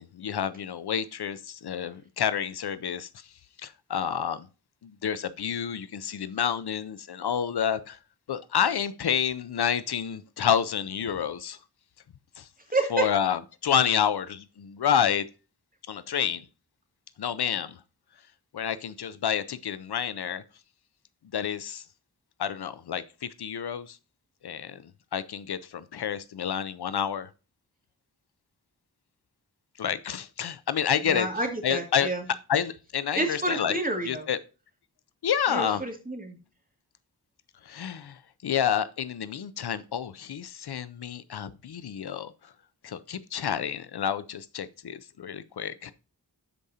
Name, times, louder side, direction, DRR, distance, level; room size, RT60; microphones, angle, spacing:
voice 1, 0.0-3.3 3.6-4.5 4.8-8.0 8.3-11.6 12.4-12.5 12.9-15.3 15.9-16.5 17.2-17.8 18.5-20.4 21.3-21.8 22.4-24.0 24.4-27.3 29.8-31.3 31.6-32.1 32.5-33.8 34.1-34.4 35.2-35.8 37.6-42.5 42.8-45.9, left 8 dB, 80° left, 0.6 m, -29 dB
voice 2, 12.7-13.1 31.1-32.2 33.2-34.3 35.5-36.4, right 2 dB, 20° right, 2.1 m, -29 dB
12.0 x 4.9 x 2.7 m
wide cardioid pair, 75°, 39 cm